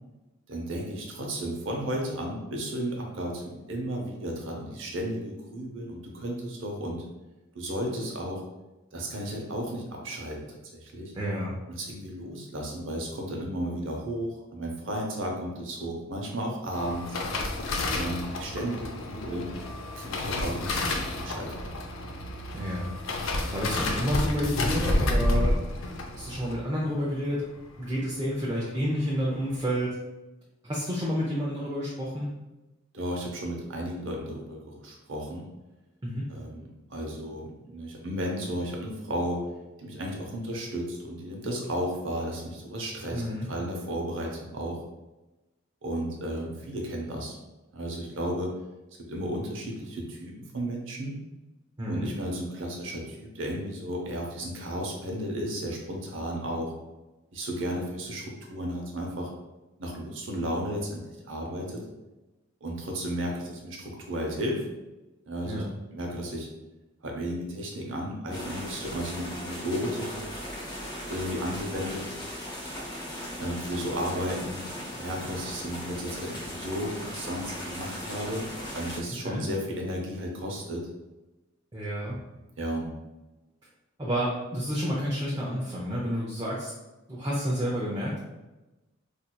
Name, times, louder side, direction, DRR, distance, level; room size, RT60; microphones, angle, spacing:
voice 1, 0.5-7.0 7.5-8.4 8.9-11.1 11.7-17.2 17.9-19.5 19.9-21.6 32.9-35.5 36.3-39.4 39.8-44.8 45.8-47.4 47.7-48.5 49.1-51.1 51.9-56.7 57.3-59.3 59.8-61.8 62.6-64.6 65.3-65.6 65.9-66.5 67.0-70.3 71.1-72.1 73.4-74.7 74.9-78.4 78.7-80.9 82.0-82.3 82.6-82.9, equal, 65° right, 0 dB, 0.7 m, -33 dB
voice 2, 11.1-11.6 22.5-22.9 23.5-25.6 26.2-27.4 27.8-29.9 30.6-32.3 36.0-36.3 43.1-43.5 51.8-52.1 65.4-65.7 79.2-79.4 81.7-82.2 84.0-86.7 87.1-88.2, equal, 20° right, -6 dB, 0.5 m, -30 dB
sound 1, 16.7-28.1 28.4-28.7 29.0-29.5 29.8-29.9, left 1 dB, 75° left, 0.5 m, -30 dB
sound 2, 68.3-79.0, left 1 dB, 20° left, 0.7 m, -38 dB
4.3 x 2.6 x 2.2 m, 1.1 s
head